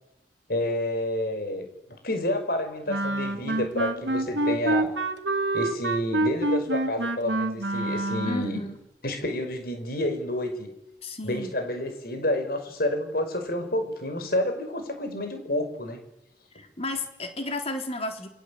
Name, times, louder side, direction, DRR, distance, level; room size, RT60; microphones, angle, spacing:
voice 1, 0.5-1.7 2.0-4.9 5.5-8.7 9.0-10.7 11.2-16.0, left 1 dB, 55° left, 7 dB, 5.7 m, -29 dB
Wind instrument woodwind instrument, 2.9-8.6, right 2 dB, 85° right, 2.7 m, -27 dB
voice 2, 8.2-8.8 11.0-11.5 16.5-18.3, left 2 dB, 35° left, 5 dB, 3.8 m, -33 dB
29.0 x 23.0 x 8.7 m, 0.86 s
head